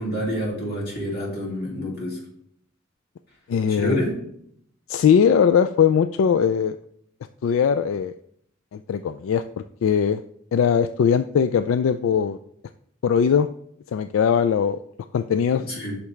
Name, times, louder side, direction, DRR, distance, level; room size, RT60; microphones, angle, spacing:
voice 1, 0.0-2.2 3.7-4.1 15.6-16.0, equal, 55° left, -3 dB, 2.5 m, -28 dB
voice 2, 3.5-4.0 4.9-6.8 7.4-8.1 8.7-9.4 9.8-10.2 10.5-12.4 13.0-13.5 13.9-14.8 15.1-15.6, left 7 dB, 80° left, 10 dB, 0.3 m, -20 dB
8.3 x 5.8 x 3.3 m, 0.68 s
head